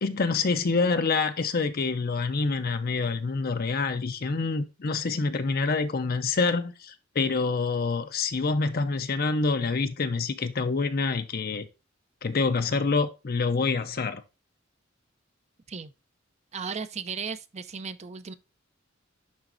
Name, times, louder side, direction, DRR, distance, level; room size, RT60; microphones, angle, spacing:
voice 1, 0.0-11.7 12.2-14.2, left 4 dB, 50° left, 0.6 m, -26 dB
voice 2, 16.5-18.3, right 5 dB, 35° right, 0.5 m, -35 dB
10.5 x 4.1 x 2.5 m
head